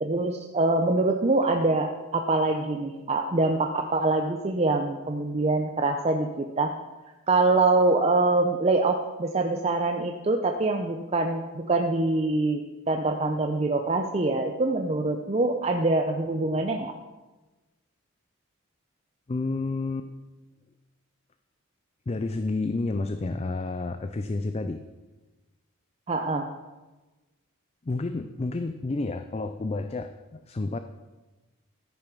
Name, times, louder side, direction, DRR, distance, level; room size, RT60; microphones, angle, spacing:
voice 1, 0.0-6.7 7.3-12.6 12.9-16.9 26.1-26.5, right 2 dB, 30° right, 4 dB, 0.6 m, -24 dB
voice 2, 19.3-20.1 22.1-24.8 27.8-30.8, left 3 dB, 30° left, 8 dB, 0.4 m, -30 dB
13.5 x 6.5 x 6.1 m, 1.2 s
head